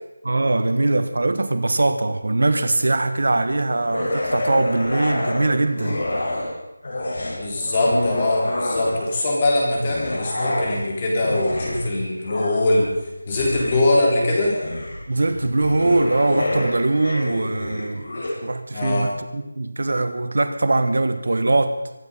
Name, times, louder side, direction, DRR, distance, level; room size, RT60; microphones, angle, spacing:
voice 1, 0.2-6.0 15.1-18.1 18.4-21.8, right 2 dB, 60° right, 10 dB, 1.5 m, -21 dB
sound 1, 3.9-6.5 6.8-9.2 9.7-18.3, left 1 dB, 50° left, 5.9 m, -28 dB
voice 2, 7.3-12.9 13.3-14.6 18.7-19.1, left 2 dB, 25° left, -2 dB, 4.0 m, -21 dB
24.5 x 9.8 x 5.6 m, 0.97 s
figure-of-eight pair, 175°, 0 cm